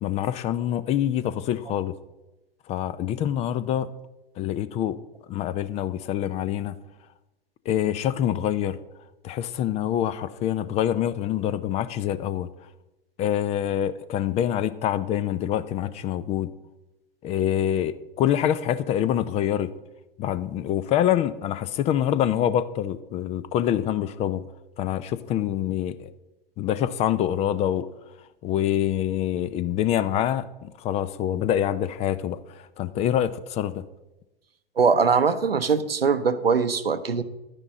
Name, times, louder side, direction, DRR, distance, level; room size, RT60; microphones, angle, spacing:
voice 1, 0.0-1.9 2.7-3.9 4.4-5.0 5.3-6.8 7.7-8.8 9.2-12.5 13.2-16.5 17.2-19.7 20.2-24.5 24.8-26.1 26.6-27.9 28.4-33.8, left 11 dB, 20° left, 16 dB, 0.4 m, -25 dB
voice 2, 34.8-37.2, right 5 dB, 85° right, 12 dB, 0.8 m, -21 dB
11.5 x 9.9 x 3.7 m, 0.97 s
figure-of-eight pair, 95°, 29 cm